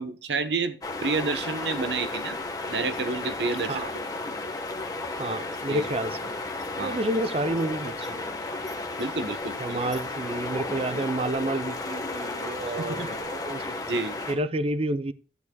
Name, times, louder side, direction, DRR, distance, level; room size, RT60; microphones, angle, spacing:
voice 1, 0.0-2.4 2.7-3.8 5.7-5.9 6.8-7.0 9.0-9.9 12.7-13.2 13.5-14.2, right 3 dB, 70° right, 1.0 m, -30 dB
sound 1, 0.8-14.3, left 2 dB, 20° left, 1.2 m, -33 dB
voice 2, 5.2-6.3 6.7-8.3 9.6-13.7 14.3-15.1, right 1 dB, 30° right, 0.5 m, -30 dB
11.0 x 9.7 x 2.2 m
head